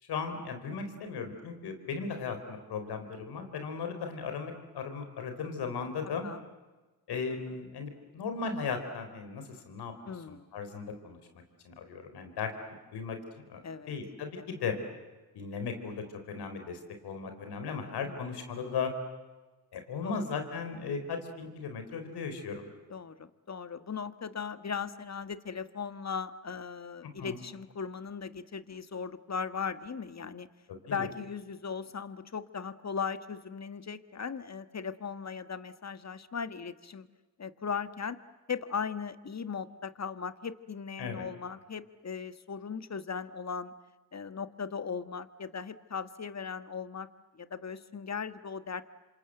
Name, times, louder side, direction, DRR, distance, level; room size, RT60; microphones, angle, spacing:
voice 1, 0.0-6.3 7.1-9.9 10.3-12.5 12.9-13.2 13.5-13.6 13.9-14.8 15.3-18.9 19.7-22.7 27.2-27.4 30.7-31.1 41.0-41.2, left 5 dB, 85° left, 7 dB, 4.1 m, -37 dB
voice 2, 10.1-10.5 13.6-13.9 14.4-14.5 18.0-18.2 20.0-20.2 22.9-30.5 30.8-37.1 37.4-38.2 38.5-43.7 44.1-47.1 47.3-48.9, left 6 dB, 45° left, 12 dB, 1.7 m, -38 dB
28.0 x 26.5 x 7.9 m, 1.2 s
supercardioid pair, 50°, 38 cm